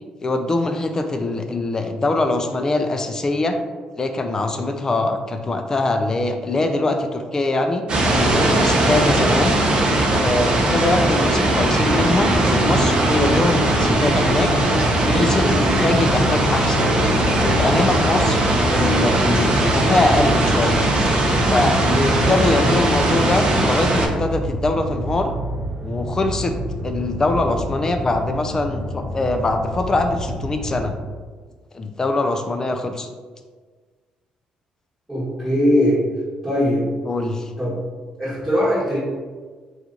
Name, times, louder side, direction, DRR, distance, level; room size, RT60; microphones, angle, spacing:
voice 1, 0.2-3.6 4.0-7.8 8.3-9.6 10.2-14.5 15.1-16.9 17.4-20.9 21.5-25.3 25.8-26.5 26.8-30.9 31.7-33.1 37.1-37.5, left 2 dB, 25° left, 6 dB, 0.3 m, -22 dB
sound 1, 7.9-24.1, right 1 dB, 40° right, 0.6 m, -19 dB
sound 2, 13.0-30.9, equal, 60° right, 1.1 m, -29 dB
voice 2, 35.1-36.0 36.4-36.9 37.6-37.8 38.2-39.0, equal, 10° right, -12 dB, 1.1 m, -20 dB
2.9 x 2.4 x 3.7 m, 1.4 s
cardioid pair, 120°, 2 cm